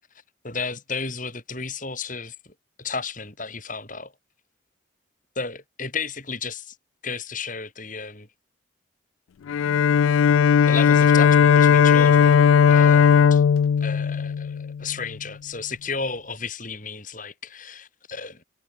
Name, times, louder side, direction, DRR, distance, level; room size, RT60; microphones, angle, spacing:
voice 1, 0.4-2.5 2.8-4.1 5.4-6.8 7.0-7.5 8.1-8.3 10.7-13.4 13.8-18.4, left 4 dB, 40° left, 7.9 m, -33 dB
Bowed string instrument, 9.5-14.9, left 7 dB, 85° left, 0.3 m, -17 dB
head